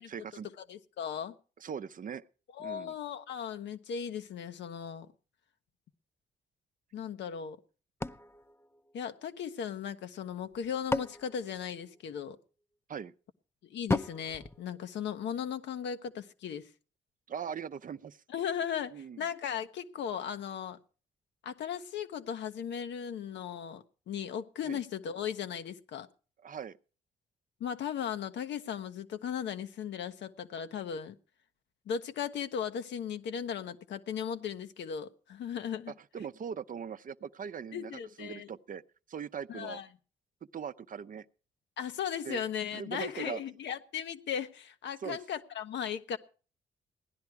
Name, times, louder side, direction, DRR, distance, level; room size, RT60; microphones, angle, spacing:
voice 1, 0.0-0.5 1.6-2.2 2.6-2.9 12.9-13.1 17.3-18.2 18.9-19.2 24.7-24.8 26.4-26.8 36.1-37.9 38.2-38.8 39.1-39.8 40.5-41.3 42.3-42.4 42.7-43.4 45.0-45.2, right 7 dB, 45° right, 0.6 m, -40 dB
voice 2, 0.6-1.3 2.5-5.1 6.9-7.6 8.9-12.4 13.6-16.7 18.3-20.8 21.4-26.1 27.6-31.1 31.9-35.9 37.7-38.5 39.5-39.9 41.8-46.2, left 8 dB, 75° left, 0.9 m, -37 dB
sound 1, 8.0-9.6 10.4-12.4 13.9-15.5, left 2 dB, 15° left, 0.6 m, -37 dB
16.5 x 10.5 x 4.5 m
supercardioid pair, 55°, 18 cm